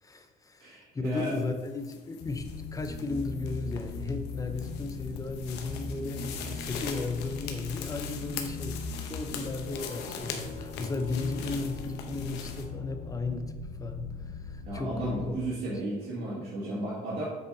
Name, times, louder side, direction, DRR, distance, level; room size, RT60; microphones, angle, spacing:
voice 1, 0.0-15.7, left 3 dB, 20° left, 6 dB, 0.7 m, -35 dB
voice 2, 0.6-1.3 14.7-17.2, right 1 dB, 70° right, -7 dB, 2.1 m, -34 dB
sound 1, 1.1-12.7, left 7 dB, 90° left, 0.9 m, -43 dB
sound 2, 2.2-15.3, left 4 dB, 65° left, 1.5 m, -39 dB
7.9 x 6.7 x 2.7 m, 1.4 s
cardioid pair, 110°, 17 cm